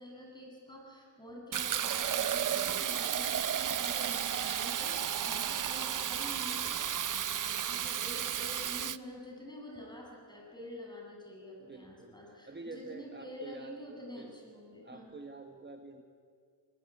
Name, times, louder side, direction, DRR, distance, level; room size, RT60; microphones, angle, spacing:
voice 1, 0.0-6.8 7.4-15.2, left 1 dB, 10° left, -1 dB, 7.9 m, -47 dB
Fill (with liquid), 1.5-9.0, right 9 dB, 50° right, 0.7 m, -33 dB
voice 2, 11.6-14.5 14.8-16.0, right 3 dB, 25° right, 5 dB, 1.5 m, -48 dB
21.0 x 20.0 x 9.7 m, 2.2 s
cardioid pair, 90°, 42 cm